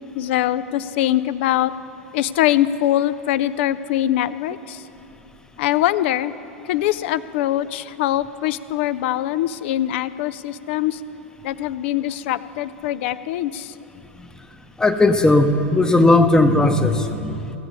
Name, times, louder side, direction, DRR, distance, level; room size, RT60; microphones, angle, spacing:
voice 1, 0.2-1.7 2.1-4.8 5.6-6.3 6.7-11.0 11.4-13.7, left 13 dB, 60° left, 15 dB, 0.4 m, -22 dB
voice 2, 14.8-17.5, left 2 dB, 10° left, 7 dB, 0.8 m, -17 dB
16.0 x 8.0 x 5.3 m, 2.8 s
hypercardioid pair, 95°, 7 cm